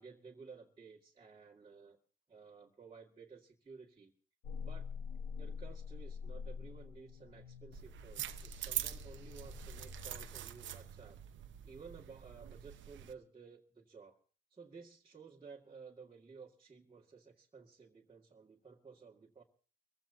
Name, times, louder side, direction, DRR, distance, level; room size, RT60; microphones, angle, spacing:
voice 1, 0.0-2.0 2.3-4.1 4.6-4.9 5.4-11.2 11.6-14.2 14.5-19.4, right 5 dB, 25° right, -4 dB, 2.0 m, -55 dB
sound 1, 4.4-10.3, left 6 dB, 75° left, 1.3 m, -46 dB
sound 2, 7.7-13.1, right 11 dB, 70° right, 0.9 m, -44 dB
25.0 x 15.0 x 2.7 m, 0.42 s
cardioid pair, 90°, 20 cm